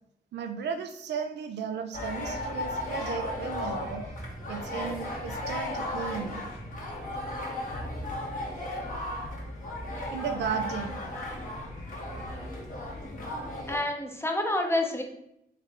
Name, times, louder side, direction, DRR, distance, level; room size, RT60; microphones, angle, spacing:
voice 1, 0.3-4.0 4.5-6.4 10.1-11.0, right 7 dB, 90° right, 6 dB, 0.5 m, -35 dB
sound 1, 1.9-13.8, left 1 dB, 50° left, 1.3 m, -35 dB
voice 2, 13.7-15.0, left 1 dB, 15° left, 3 dB, 0.7 m, -28 dB
3.7 x 3.3 x 3.5 m, 0.78 s
cardioid pair, 75°, 17 cm